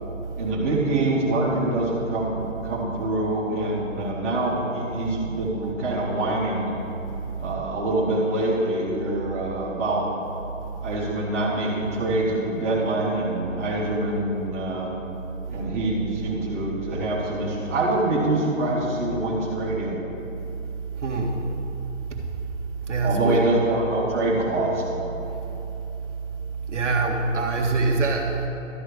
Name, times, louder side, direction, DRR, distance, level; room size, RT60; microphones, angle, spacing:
voice 1, 0.3-2.4 2.6-6.7 7.4-10.1 10.8-14.9 15.5-20.0 23.0-24.8, right 2 dB, 10° right, -11 dB, 0.9 m, -25 dB
voice 2, 21.0-21.4 22.1-22.2 22.9-23.4 25.3-25.4 26.7-28.5, right 3 dB, 65° right, 1 dB, 1.6 m, -24 dB
12.5 x 4.8 x 8.1 m, 3.0 s
hypercardioid pair, 175°, 39 cm